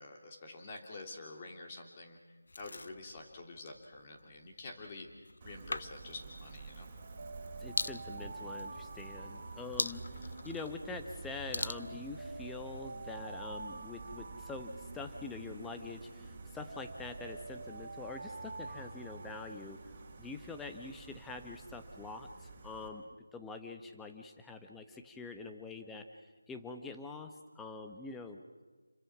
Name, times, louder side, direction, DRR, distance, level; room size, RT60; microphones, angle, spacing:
voice 1, 0.0-6.9, left 3 dB, 25° left, 2 dB, 3.3 m, -48 dB
sound 1, 2.5-13.0, left 2 dB, 65° left, 0.8 m, -44 dB
Gull seagull, 5.4-22.9, right 3 dB, 20° right, 3.8 m, -49 dB
Alarm, 7.0-11.1 11.7-16.1 16.7-20.5, right 3 dB, 60° right, 2.6 m, -49 dB
voice 2, 7.6-19.8 20.2-23.0 23.3-26.1 26.5-28.4, left 3 dB, 5° left, 5 dB, 1.1 m, -45 dB
29.5 x 23.5 x 6.1 m, 1.3 s
figure-of-eight pair, 170°, 0 cm